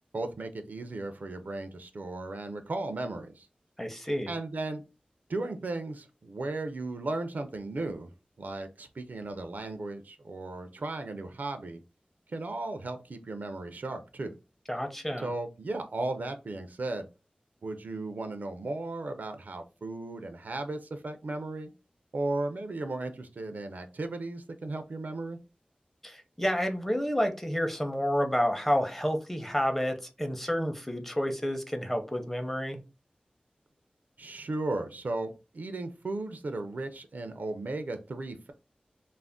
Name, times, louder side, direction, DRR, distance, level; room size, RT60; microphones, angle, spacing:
voice 1, 0.1-3.5 4.3-4.8 5.3-8.1 8.4-11.8 12.3-14.3 15.2-17.1 17.6-21.7 22.1-25.4 34.2-38.5, right 2 dB, 75° right, 7 dB, 0.4 m, -35 dB
voice 2, 3.8-4.4 14.7-15.3 26.0-32.8, equal, 10° left, 5 dB, 0.6 m, -30 dB
2.4 x 2.0 x 3.5 m, 0.29 s
wide cardioid pair, 50°, 3 cm